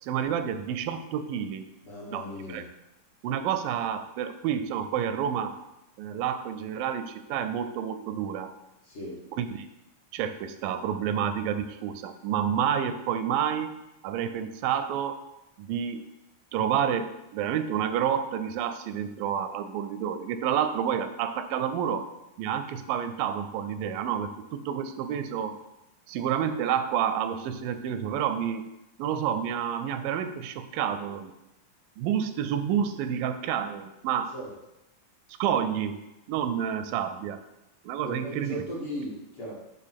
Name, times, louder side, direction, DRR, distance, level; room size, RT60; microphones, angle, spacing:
voice 1, 0.0-1.7 2.1-2.6 3.2-5.6 6.0-8.5 9.4-9.7 10.1-13.7 14.0-15.2 15.6-16.0 16.5-22.1 22.4-25.6 26.1-28.7 29.0-31.3 32.0-34.3 35.4-36.0 36.3-37.4 37.8-38.6, right 9 dB, 85° right, 10 dB, 2.3 m, -29 dB
voice 2, 1.8-2.6 8.8-9.2 34.3-34.5 38.0-39.5, equal, 55° left, -6 dB, 1.7 m, -37 dB
6.6 x 3.5 x 5.8 m, 0.92 s
omnidirectional pair, 3.9 m